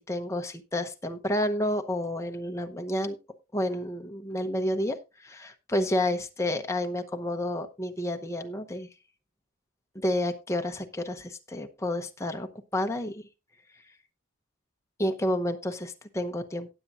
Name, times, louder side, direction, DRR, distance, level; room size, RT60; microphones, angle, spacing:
voice 1, 0.0-3.2 3.5-8.9 9.9-13.2 15.0-16.7, left 1 dB, 15° left, 5 dB, 0.8 m, -30 dB
18.0 x 7.5 x 2.5 m, 0.27 s
head